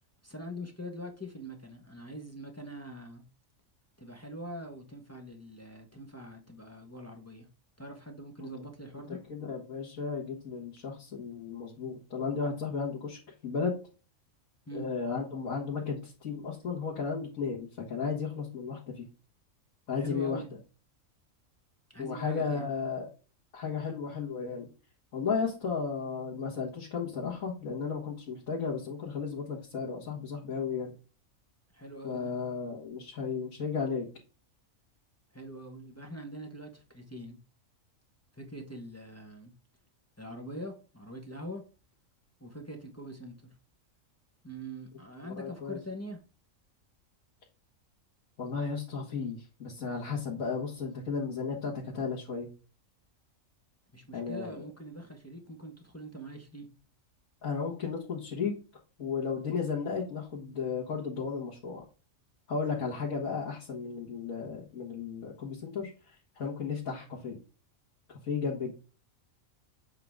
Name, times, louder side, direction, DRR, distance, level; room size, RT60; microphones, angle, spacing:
voice 1, 0.2-3.2 4.0-7.4 7.8-9.2 14.7-14.9 19.9-20.5 21.9-22.7 31.7-32.3 35.3-37.4 38.4-39.5 40.2-41.6 42.4-43.5 44.4-46.2 53.9-56.7, equal, 10° left, 1.2 m, -43 dB
voice 2, 9.1-13.8 14.7-19.0 19.9-20.4 22.0-23.1 23.5-24.7 25.1-30.9 32.0-34.1 45.2-45.8 48.4-52.5 54.1-54.6 57.4-58.5 59.0-61.8 62.5-67.4 68.2-68.7, left 5 dB, 80° left, 2.1 m, -34 dB
7.7 x 3.9 x 3.6 m
omnidirectional pair, 1.4 m